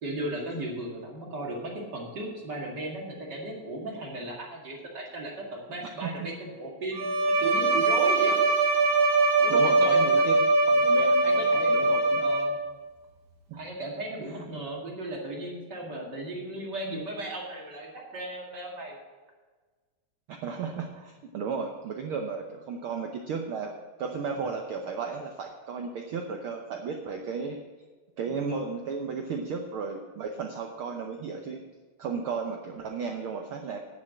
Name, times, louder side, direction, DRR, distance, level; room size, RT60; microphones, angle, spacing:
voice 1, 0.0-7.0 7.4-8.4 9.4-10.3 11.1-12.6 13.6-19.0, right 1 dB, 35° right, -1 dB, 2.4 m, -36 dB
Bowed string instrument, 6.9-12.8, right 2 dB, 55° right, 1.0 m, -22 dB
voice 2, 9.5-11.4 11.7-12.2 13.5-13.6 14.3-14.4 20.3-23.7 24.0-27.6 28.2-31.6 32.0-33.8, right 5 dB, 80° right, 3 dB, 1.2 m, -34 dB
10.0 x 7.4 x 7.5 m, 1.4 s
omnidirectional pair, 3.4 m